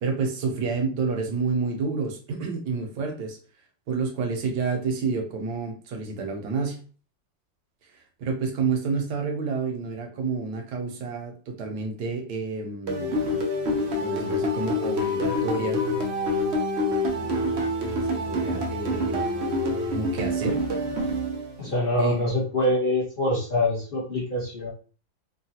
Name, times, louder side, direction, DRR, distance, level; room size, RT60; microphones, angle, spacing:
voice 1, 0.0-3.4 3.9-6.8 8.2-13.4 14.0-15.8 17.1-17.5 17.9-19.2 19.9-20.6 21.6-21.7 22.0-22.2, right 4 dB, 70° right, 2 dB, 1.2 m, -29 dB
sound 1, 12.9-21.8, left 1 dB, 85° right, 0.5 m, -26 dB
voice 2, 21.6-24.7, left 1 dB, 40° left, -6 dB, 0.8 m, -25 dB
3.7 x 2.2 x 2.8 m, 0.37 s
omnidirectional pair, 2.0 m